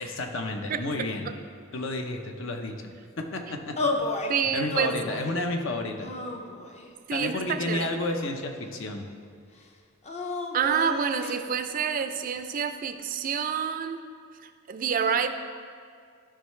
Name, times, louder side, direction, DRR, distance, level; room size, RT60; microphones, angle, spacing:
voice 1, 0.0-1.4 1.7-2.9 3.2-3.8 4.5-6.1 7.1-9.1, left 2 dB, 65° left, 4 dB, 0.8 m, -31 dB
sound 1, 3.8-4.3 4.7-5.4 6.0-6.9 7.7-8.7 10.0-11.4, left 2 dB, 35° left, 0.6 m, -33 dB
voice 2, 4.3-4.9 7.1-7.4 7.7-7.9 10.5-14.0 14.4-15.3, right 7 dB, 40° right, 9 dB, 0.4 m, -27 dB
13.0 x 5.6 x 3.2 m, 2.2 s
head